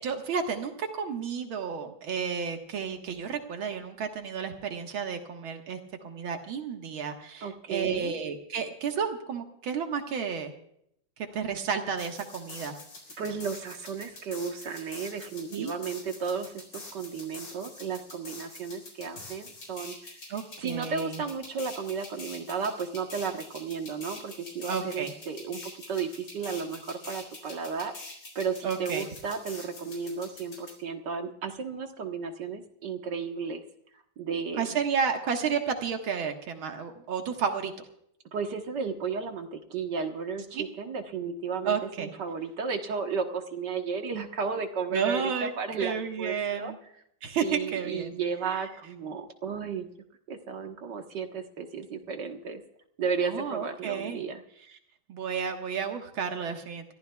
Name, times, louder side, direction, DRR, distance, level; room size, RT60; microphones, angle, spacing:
voice 1, 0.0-5.8 6.0-10.5 11.2-12.8 15.5-15.7 20.3-21.2 24.7-25.1 28.6-29.1 34.6-37.7 40.5-40.7 41.6-42.1 44.9-45.5 45.8-46.8 47.2-48.2 53.2-54.2 55.1-56.9, right 6 dB, 90° right, 4 dB, 2.3 m, -31 dB
voice 2, 7.4-8.1 13.2-20.1 20.6-27.9 28.4-33.6 34.2-34.8 38.3-46.7 47.4-49.9 50.3-52.6 53.0-54.4, right 5 dB, 60° right, 5 dB, 1.9 m, -34 dB
sound 1, 12.0-30.7, left 2 dB, 80° left, 5.0 m, -45 dB
29.5 x 15.0 x 2.3 m, 0.72 s
omnidirectional pair, 2.2 m